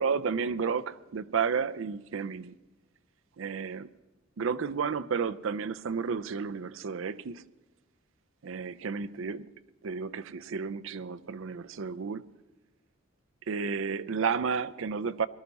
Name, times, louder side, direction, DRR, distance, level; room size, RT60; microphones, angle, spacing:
voice 1, 0.0-2.5 3.4-3.9 4.4-7.4 8.4-9.5 9.8-12.3 13.5-15.3, right 5 dB, 70° right, 0.5 m, -32 dB
18.5 x 12.5 x 4.1 m
head